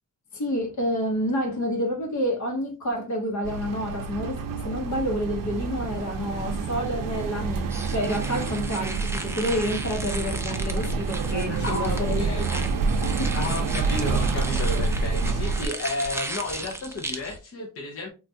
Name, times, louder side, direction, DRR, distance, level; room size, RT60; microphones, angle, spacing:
voice 1, 0.3-12.6 13.0-13.4, equal, 60° left, 1.0 m, -29 dB
sound 1, 3.4-15.7, right 4 dB, 70° right, 0.6 m, -28 dB
sound 2, 7.7-17.4, right 2 dB, 10° right, 0.3 m, -36 dB
voice 2, 11.5-12.5 13.3-18.1, left 2 dB, 45° left, 0.6 m, -32 dB
3.3 x 2.4 x 2.7 m
wide cardioid pair, 145°, 33 cm